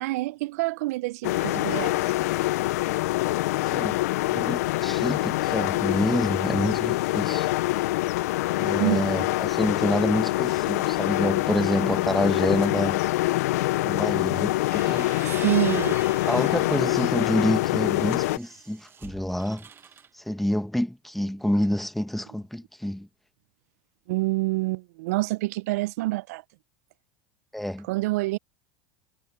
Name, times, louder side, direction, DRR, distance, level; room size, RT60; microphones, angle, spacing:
voice 1, 0.0-2.1 4.4-4.5 8.8-9.1 15.3-16.0 24.1-26.4 27.9-28.4, right 21 dB, 70° right, 0.5 m, -27 dB
sound 1, 1.2-18.4, left 18 dB, 75° left, 0.3 m, -25 dB
voice 2, 3.6-4.0 4.3-7.5 8.6-13.0 13.8-15.1 16.3-19.7 20.2-23.1 27.5-27.9, left 1 dB, ahead, 1.5 m, -27 dB
sound 2, 14.5-16.8 17.3-20.1, right 7 dB, 25° right, 1.1 m, -44 dB
hypercardioid pair, 105°, 9 cm